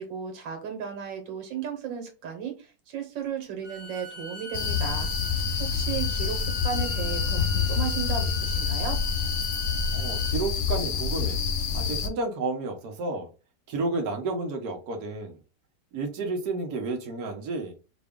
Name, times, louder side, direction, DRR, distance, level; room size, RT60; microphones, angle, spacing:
voice 1, 0.0-5.1 5.6-9.0, right 7 dB, 80° right, 4 dB, 1.7 m, -35 dB
Bowed string instrument, 3.6-10.4, right 1 dB, 35° right, 0.5 m, -41 dB
sound 1, 4.5-12.1, left 6 dB, 80° left, 0.6 m, -27 dB
voice 2, 9.9-11.4 11.7-13.3 13.7-15.4 15.9-17.7, right 3 dB, 60° right, 2 dB, 1.3 m, -31 dB
5.0 x 2.2 x 3.5 m, 0.32 s
omnidirectional pair, 2.0 m